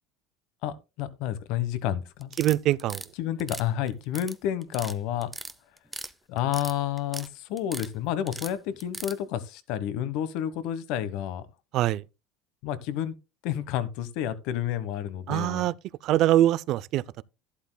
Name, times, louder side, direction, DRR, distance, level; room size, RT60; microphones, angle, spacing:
voice 1, 0.6-2.3 3.2-5.3 6.3-11.4 12.6-13.1 13.4-15.7, left 11 dB, 65° left, 1.2 m, -30 dB
sound 1, 2.2-3.1 3.4-4.3 4.6-4.9 5.2-6.1 6.4-7.3 7.6-7.9 8.3-9.2, right 2 dB, 5° right, 0.6 m, -38 dB
voice 2, 2.4-3.0 11.7-12.0 15.3-15.7 16.0-17.2, right 13 dB, 55° right, 0.4 m, -23 dB
11.5 x 11.5 x 2.2 m
cardioid pair, 135°, 0 cm